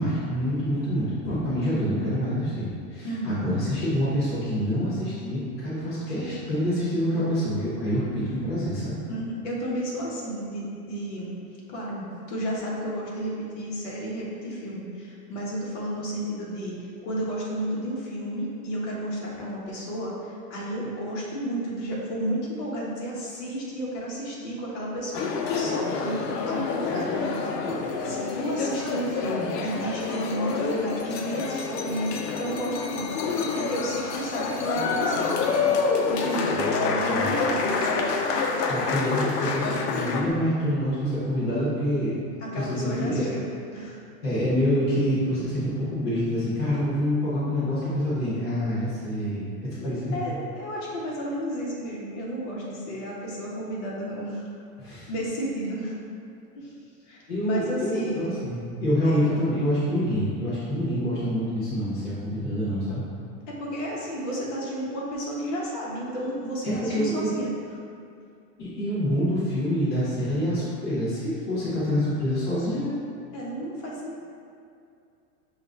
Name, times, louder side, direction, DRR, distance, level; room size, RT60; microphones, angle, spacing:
voice 1, 0.0-9.0 36.5-37.3 38.7-42.2 42.5-43.3 44.2-50.2 54.8-55.1 57.3-63.0 66.6-67.3 68.6-72.9, equal, 20° left, -12 dB, 0.4 m, -26 dB
voice 2, 3.0-3.5 9.1-11.3 11.7-33.1 33.5-35.3 36.1-38.1 42.4-44.0 49.8-54.5 54.8-56.0 56.5-56.7 57.1-58.3 59.0-59.2 63.5-67.5 71.6-71.8 73.3-74.2, equal, 50° left, -5 dB, 1.1 m, -32 dB
sound 1, 25.1-40.2, left 4 dB, 80° left, 0.7 m, -27 dB
5.9 x 2.5 x 3.2 m, 2.5 s
supercardioid pair, 160°, 48 cm